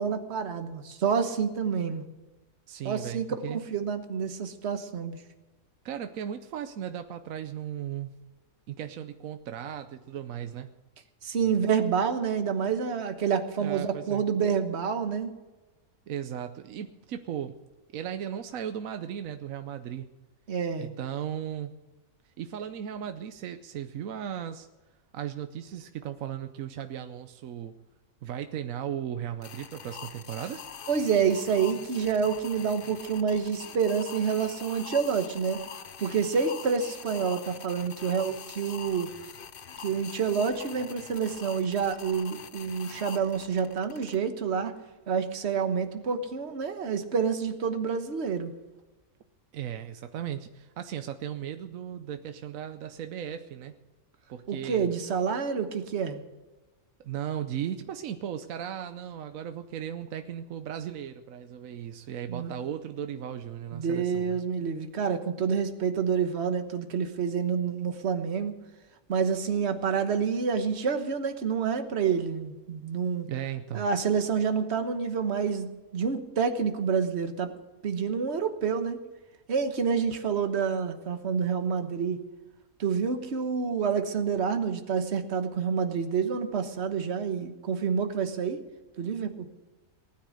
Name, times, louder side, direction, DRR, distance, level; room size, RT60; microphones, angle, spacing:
voice 1, 0.0-2.0 2.8-5.2 11.2-15.3 20.5-21.0 30.9-35.6 36.0-39.1 39.8-44.7 45.1-48.5 54.5-56.2 62.3-62.5 63.7-68.5 69.1-73.3 73.7-77.5 77.8-79.0 79.5-82.2 82.8-88.6 89.0-89.5, right 6 dB, 50° right, 7 dB, 1.4 m, -28 dB
voice 2, 2.7-3.6 5.8-8.1 8.7-10.7 11.4-11.6 13.6-14.2 16.1-17.5 17.9-20.1 20.8-21.7 22.4-24.7 25.1-27.7 28.2-30.6 49.5-53.7 54.3-54.9 57.0-64.4 73.3-73.9, right 9 dB, 75° right, 8 dB, 1.1 m, -36 dB
sound 1, 29.4-44.2, left 7 dB, 50° left, 0.7 m, -44 dB
19.0 x 10.0 x 6.4 m, 1.2 s
omnidirectional pair, 1.5 m